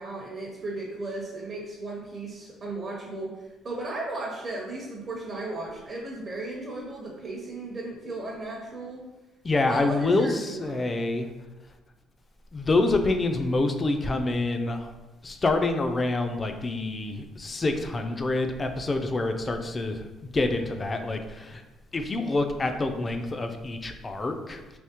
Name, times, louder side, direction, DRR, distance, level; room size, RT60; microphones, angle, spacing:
voice 1, 0.0-9.0 9.7-10.9, right 2 dB, 40° right, -3 dB, 0.7 m, -35 dB
voice 2, 9.4-11.3 12.5-14.9 15.2-21.6 21.9-24.6, left 2 dB, 25° left, 6 dB, 0.3 m, -27 dB
3.5 x 2.7 x 2.9 m, 1.1 s
cardioid pair, 105°, 0 cm